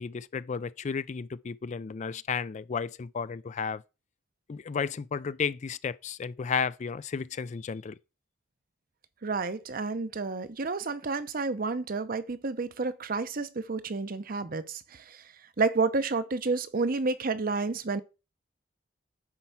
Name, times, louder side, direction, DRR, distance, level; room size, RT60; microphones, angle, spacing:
voice 1, 0.0-3.8 4.5-8.0, left 5 dB, 40° left, 0.4 m, -33 dB
voice 2, 9.2-15.2 15.6-18.0, right 3 dB, 50° right, 0.7 m, -30 dB
9.6 x 4.5 x 5.8 m
head